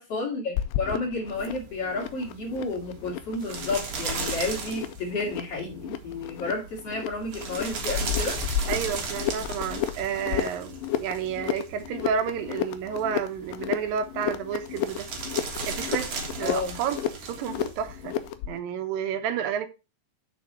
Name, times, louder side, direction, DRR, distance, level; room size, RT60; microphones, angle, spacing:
voice 1, 0.0-8.4 16.4-16.8, left 3 dB, 45° left, 3.0 m, -31 dB
sound 1, 0.6-18.6, left 11 dB, 85° left, 2.4 m, -33 dB
sound 2, 1.4-18.3, right 4 dB, 50° right, 2.6 m, -37 dB
voice 2, 8.7-15.1 15.6-16.1 16.4-18.2 18.5-19.7, right 8 dB, 80° right, 2.6 m, -31 dB
6.8 x 6.3 x 4.3 m
omnidirectional pair, 4.0 m